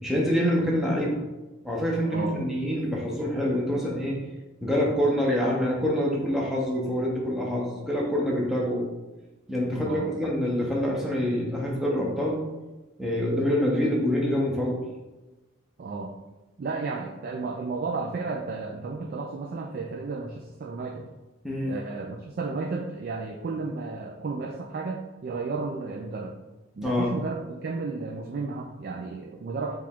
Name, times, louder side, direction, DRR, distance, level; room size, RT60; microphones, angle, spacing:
voice 1, 0.0-1.2 1.6-4.2 4.6-8.9 9.5-12.4 13.0-14.8 21.4-21.7 26.8-27.1, equal, ahead, -3 dB, 0.7 m, -26 dB
voice 2, 2.0-2.4 9.8-10.1 15.8-16.1 16.6-21.1 21.7-26.4 26.8-29.8, right 4 dB, 45° right, 1 dB, 0.3 m, -33 dB
4.7 x 2.4 x 3.5 m, 1.1 s
head